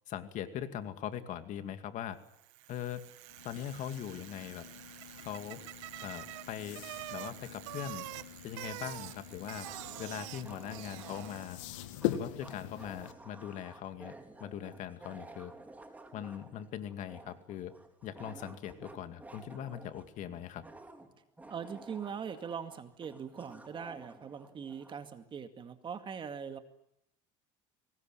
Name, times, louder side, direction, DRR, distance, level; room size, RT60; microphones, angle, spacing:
voice 1, 0.1-2.2 2.7-3.0 3.4-4.7 5.2-5.6 6.0-6.8 7.1-8.1 8.4-9.7 10.0-11.6 12.1-15.5 16.1-17.7 18.0-20.6, left 10 dB, 55° left, 9 dB, 2.3 m, -41 dB
Bicycle, 2.3-11.8, right 19 dB, 80° right, 1.2 m, -47 dB
sound 1, 3.3-13.1, left 12 dB, 85° left, 2.1 m, -43 dB
sound 2, 8.7-8.8 9.6-25.0, right 2 dB, 10° right, 3.4 m, -53 dB
voice 2, 21.5-26.6, right 7 dB, 30° right, 8 dB, 2.2 m, -41 dB
24.0 x 19.5 x 9.1 m, 0.78 s
supercardioid pair, 115°, 16 cm